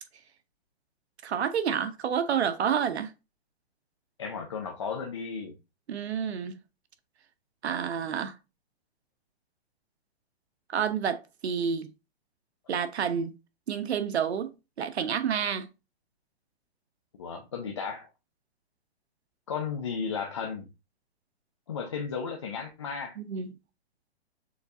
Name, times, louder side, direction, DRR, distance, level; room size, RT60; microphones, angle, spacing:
voice 1, 1.2-3.1 5.9-6.6 7.6-8.3 10.7-11.9 12.7-13.3 13.7-14.5 14.8-15.7 23.2-23.5, right 7 dB, 90° right, 0.8 m, -29 dB
voice 2, 4.2-5.5 17.2-18.1 19.5-20.7 21.7-23.2, left 6 dB, 30° left, 0.4 m, -34 dB
6.7 x 2.3 x 2.7 m
hypercardioid pair, 160°, 32 cm